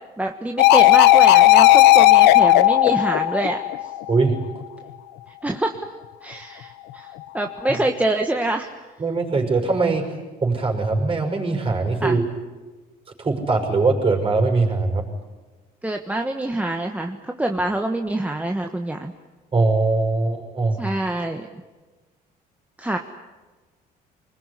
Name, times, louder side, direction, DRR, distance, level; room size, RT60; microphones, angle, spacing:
voice 1, 0.2-3.6 5.4-5.9 6.2-8.7 12.0-12.2 15.8-19.1 20.8-21.6 22.8-23.0, right 1 dB, 10° right, 4 dB, 1.4 m, -25 dB
sound 1, 0.6-4.1 7.6-7.8, left 14 dB, 85° left, 1.0 m, -13 dB
voice 2, 9.0-10.1 10.4-12.2 13.2-15.0 19.5-20.8, right 3 dB, 30° right, 3 dB, 5.9 m, -21 dB
25.0 x 21.0 x 9.9 m, 1.3 s
cardioid pair, 110°, 17 cm